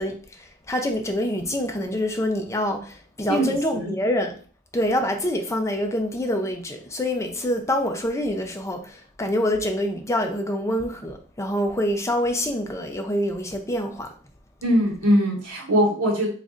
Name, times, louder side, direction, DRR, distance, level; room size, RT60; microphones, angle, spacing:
voice 1, 0.0-4.4 4.7-14.1, left 1 dB, 15° left, 0.5 m, -26 dB
voice 2, 14.6-16.3, equal, 80° right, 1.1 m, -21 dB
3.2 x 2.5 x 3.7 m
head